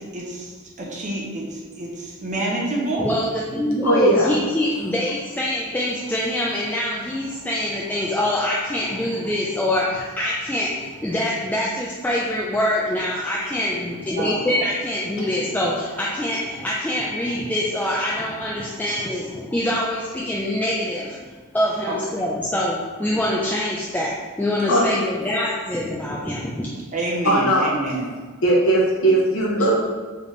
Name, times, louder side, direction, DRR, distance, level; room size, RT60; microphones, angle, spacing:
voice 1, 0.0-3.1 14.2-14.6 21.9-22.0 26.9-28.1, right 2 dB, 35° right, -3 dB, 0.8 m, -28 dB
voice 2, 3.0-21.2 21.5-26.7, left 1 dB, 10° left, -5 dB, 0.4 m, -24 dB
voice 3, 3.8-4.3 24.7-24.8 27.2-27.7 28.4-29.8, right 1 dB, 60° left, -4 dB, 1.0 m, -18 dB
4.0 x 3.3 x 3.2 m, 1.4 s
head